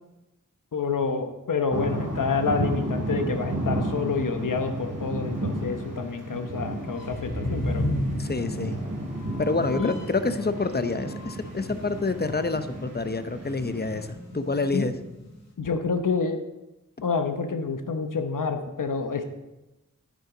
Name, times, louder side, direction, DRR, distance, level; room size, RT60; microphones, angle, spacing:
voice 1, 0.7-7.8 9.8-9.9 11.7-11.8 14.7-14.9 15.6-16.4 17.0-19.3, left 5 dB, 85° left, 6 dB, 1.0 m, -28 dB
sound 1, 1.7-14.1, right 1 dB, 80° right, 2.7 m, -32 dB
sound 2, 6.9-10.3 10.6-12.9 13.2-13.4 13.7-15.4, left 1 dB, 55° left, 2.5 m, -34 dB
voice 2, 8.2-8.8 9.4-14.1 14.3-15.0, left 3 dB, 30° left, 10 dB, 0.8 m, -27 dB
9.7 x 9.5 x 3.9 m, 1.0 s
cardioid pair, 45°, 31 cm